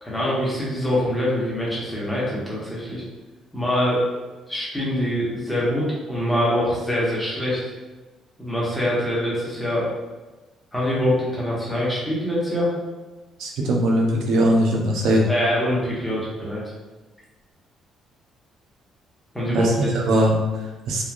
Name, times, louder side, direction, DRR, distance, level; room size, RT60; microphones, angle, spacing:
voice 1, 0.0-3.0 3.5-4.1 4.5-7.6 8.4-9.9 10.7-12.7 15.3-16.6 19.3-19.9, equal, ahead, -7 dB, 1.1 m, -24 dB
voice 2, 13.4-15.2 19.5-21.0, equal, 80° right, -1 dB, 0.6 m, -20 dB
3.2 x 2.3 x 2.5 m, 1.2 s
cardioid pair, 105°, 0 cm